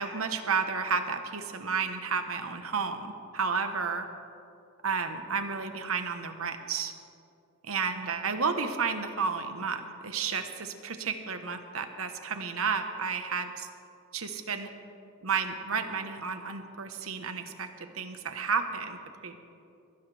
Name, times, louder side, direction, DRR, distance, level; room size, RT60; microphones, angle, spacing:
voice 1, 0.0-4.1 4.8-6.9 7.6-13.7 14.1-14.7 15.2-17.7 17.9-19.4, right 5 dB, 90° right, 7 dB, 1.2 m, -32 dB
22.5 x 16.5 x 3.4 m, 2.6 s
head